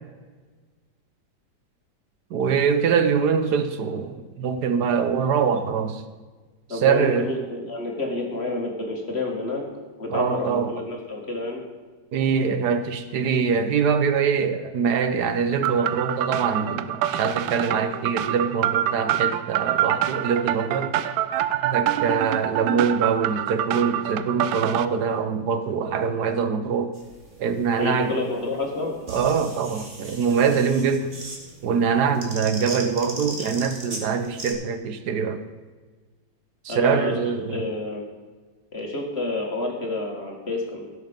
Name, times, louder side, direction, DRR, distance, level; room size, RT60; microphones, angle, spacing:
voice 1, 2.3-6.0 6.7-7.3 10.1-10.7 12.1-20.9 21.5-26.9 27.4-28.1 29.1-31.1 31.6-35.4 36.6-37.6, right 6 dB, 65° right, 10 dB, 1.2 m, -23 dB
voice 2, 6.7-9.6 10.0-11.6 27.8-29.0 36.7-38.0 38.7-40.9, left 2 dB, 35° left, 0 dB, 2.0 m, -29 dB
sound 1, 15.6-24.9, right 12 dB, 85° right, 1.4 m, -26 dB
sound 2, 26.9-34.5, right 2 dB, 40° right, 2.2 m, -39 dB
17.0 x 6.5 x 5.2 m, 1.4 s
omnidirectional pair, 2.1 m